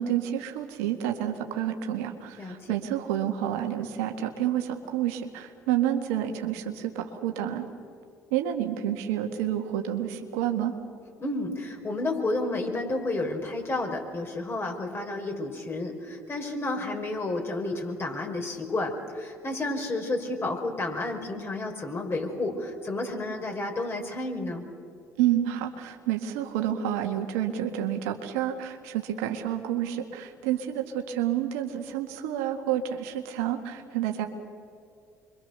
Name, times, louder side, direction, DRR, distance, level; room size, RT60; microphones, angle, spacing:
voice 1, 0.0-7.6 8.3-10.7 25.2-34.3, right 11 dB, 80° right, 4 dB, 1.9 m, -29 dB
voice 2, 2.4-2.8 11.2-24.6, left 2 dB, 35° left, 2 dB, 5.7 m, -31 dB
26.5 x 24.0 x 6.9 m, 2.4 s
hypercardioid pair, 60°, 7 cm